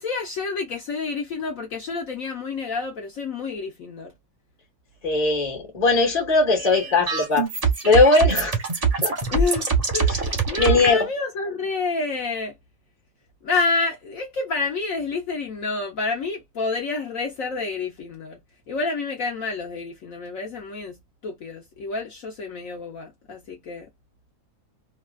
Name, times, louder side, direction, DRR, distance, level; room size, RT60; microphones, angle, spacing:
voice 1, 0.0-4.1 9.3-12.6 13.4-18.4 18.7-23.9, left 4 dB, 60° left, 1.2 m, -29 dB
voice 2, 5.0-7.5 7.8-8.6 9.0-9.1 10.1-10.2 10.6-11.0, left 3 dB, 25° left, 1.3 m, -19 dB
sound 1, 6.5-10.9, right 5 dB, 30° right, 0.7 m, -23 dB
3.1 x 2.4 x 2.3 m
omnidirectional pair, 1.7 m